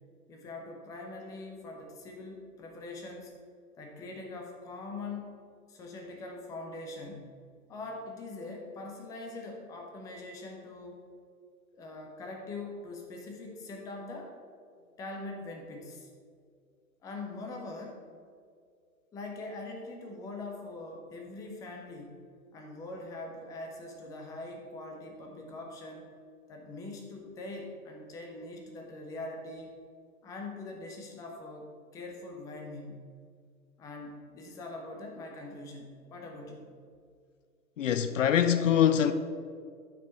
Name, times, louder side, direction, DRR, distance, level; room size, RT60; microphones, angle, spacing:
voice 1, 0.3-3.4 3.8-5.4 5.7-7.4 7.7-11.1 11.7-14.3 15.0-16.1 17.0-18.0 19.1-22.2 22.5-26.1 26.5-29.8 30.2-31.7 31.9-33.1 33.8-36.7, left 2 dB, 10° left, 0.5 m, -42 dB
voice 2, 37.8-39.1, left 9 dB, 55° left, 0.6 m, -24 dB
11.5 x 4.6 x 4.3 m
figure-of-eight pair, 110°, 45 cm